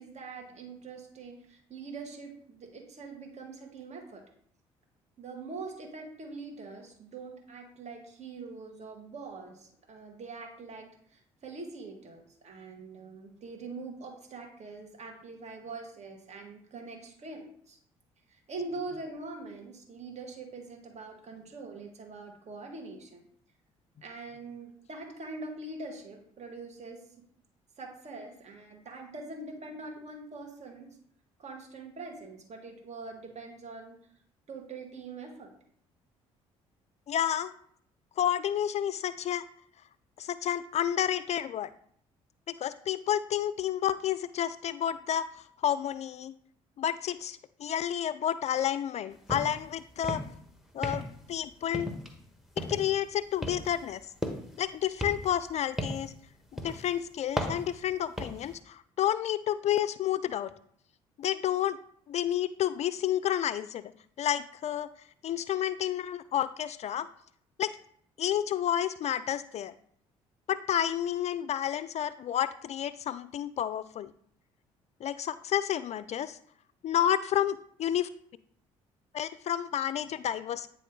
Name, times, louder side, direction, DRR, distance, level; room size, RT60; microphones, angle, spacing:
voice 1, 0.0-4.2 5.2-17.8 18.3-23.3 24.0-27.0 27.8-31.0 31.4-34.0 34.5-35.5, right 3 dB, 45° right, 2 dB, 2.0 m, -43 dB
voice 2, 37.1-37.5 38.2-39.4 40.2-41.7 42.5-45.3 45.6-46.3 46.8-50.2 50.7-51.9 52.6-54.0 54.6-56.1 56.5-60.5 61.2-61.8 62.1-63.8 64.2-64.9 65.2-67.1 67.6-67.7 68.2-69.7 70.5-74.1 75.0-76.4 76.8-78.1 79.1-80.7, left 10 dB, 45° left, 14 dB, 0.4 m, -30 dB
sound 1, 49.3-49.6 49.9-50.4 50.8-51.3 51.7-52.2 52.6-52.9 53.4-54.6 55.0-56.2 56.6-56.9 57.4-58.5, left 1 dB, ahead, 1.3 m, -35 dB
9.2 x 3.3 x 3.8 m, 0.63 s
hypercardioid pair, 50°, 16 cm